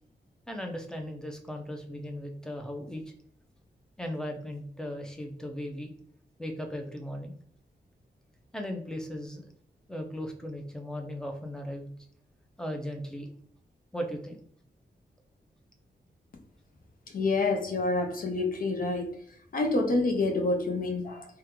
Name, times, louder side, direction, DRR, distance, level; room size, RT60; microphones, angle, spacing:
voice 1, 0.5-3.0 4.0-5.9 6.4-7.4 8.5-9.4 9.9-11.9 12.6-13.3 13.9-14.4, equal, 5° left, 0.5 m, -37 dB
voice 2, 17.1-19.1 19.5-21.3, left 3 dB, 50° left, 0.6 m, -27 dB
3.5 x 2.2 x 2.9 m
wide cardioid pair, 135°, 18 cm